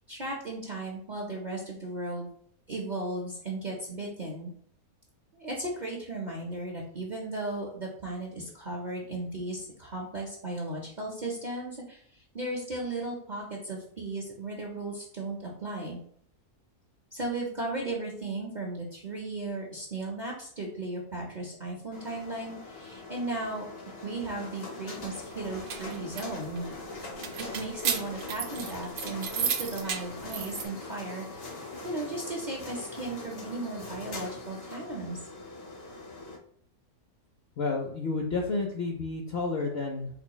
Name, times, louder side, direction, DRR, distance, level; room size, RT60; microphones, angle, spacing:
voice 1, 0.1-2.3 2.7-4.5 5.3-16.0 17.1-26.7 27.5-31.4 31.8-35.2, right 2 dB, 50° right, -2 dB, 0.5 m, -36 dB
sound 1, 21.9-36.4, left 3 dB, 50° left, 0.9 m, -42 dB
sound 2, 25.4-30.6, right 7 dB, 75° right, 1.0 m, -34 dB
voice 2, 37.6-40.1, left 3 dB, 70° left, 1 dB, 0.6 m, -30 dB
4.5 x 2.9 x 2.2 m, 0.63 s
omnidirectional pair, 1.6 m